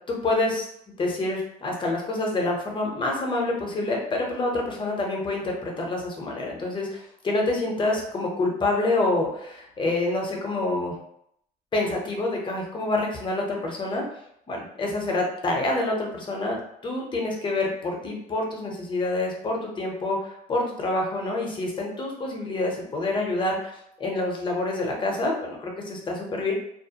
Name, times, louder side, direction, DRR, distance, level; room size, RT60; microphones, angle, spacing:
voice 1, 0.1-0.7 1.0-11.0 11.7-14.0 14.5-26.5, left 2 dB, 30° left, 0 dB, 0.7 m, -27 dB
2.4 x 2.0 x 2.8 m, 0.74 s
cardioid pair, 110°, 17 cm